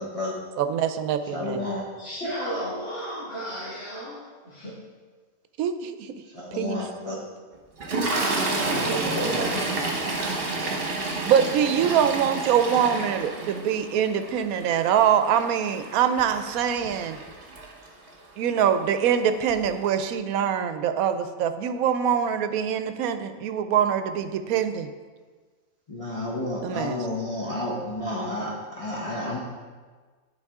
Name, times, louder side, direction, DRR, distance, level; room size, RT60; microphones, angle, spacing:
voice 1, 0.0-0.4 1.2-1.9 6.2-7.3 25.9-29.4, left 1 dB, 30° left, -5 dB, 0.8 m, -31 dB
voice 2, 0.6-1.7 5.6-6.1 6.6-6.8 11.3-17.2 18.4-24.9 26.6-27.0, right 8 dB, 75° right, 9 dB, 1.0 m, -24 dB
voice 3, 2.0-4.7 8.2-9.9, equal, 50° left, -13 dB, 2.6 m, -33 dB
Toilet flush, 7.8-18.1 19.0-19.2 19.5-19.7, right 2 dB, 40° right, 1.3 m, -30 dB
10.5 x 4.7 x 3.6 m, 1.4 s
omnidirectional pair, 1.6 m